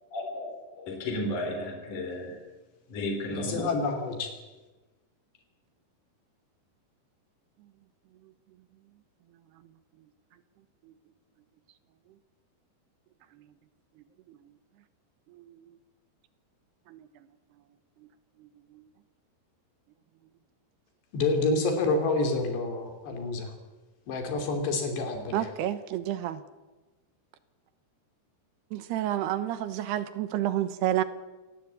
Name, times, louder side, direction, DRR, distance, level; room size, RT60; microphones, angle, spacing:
voice 1, 0.1-2.4 2.9-3.7, left 1 dB, 50° left, 3 dB, 4.8 m, -33 dB
voice 2, 3.3-4.3 21.1-23.5 24.1-25.5, left 3 dB, 80° left, 5 dB, 5.1 m, -28 dB
voice 3, 14.0-14.5 15.3-15.7 16.9-17.0 18.4-18.8 25.3-26.4 28.7-31.0, right 12 dB, 80° right, 12 dB, 3.1 m, -31 dB
26.5 x 18.5 x 8.7 m, 1.2 s
omnidirectional pair, 4.8 m